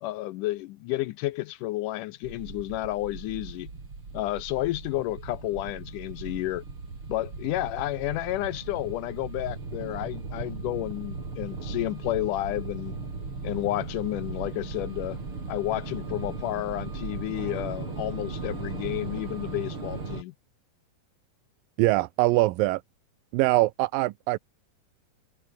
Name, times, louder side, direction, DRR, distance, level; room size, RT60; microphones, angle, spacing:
voice 1, 0.0-3.7 4.1-6.6 7.1-13.0 13.4-15.2 15.5-20.3, left 17 dB, 80° left, 1.9 m, -31 dB
sound 1, 2.2-20.2, right 4 dB, 35° right, 5.3 m, -37 dB
voice 2, 21.8-22.8 23.3-24.4, right 19 dB, 80° right, 2.3 m, -23 dB
omnidirectional pair, 4.2 m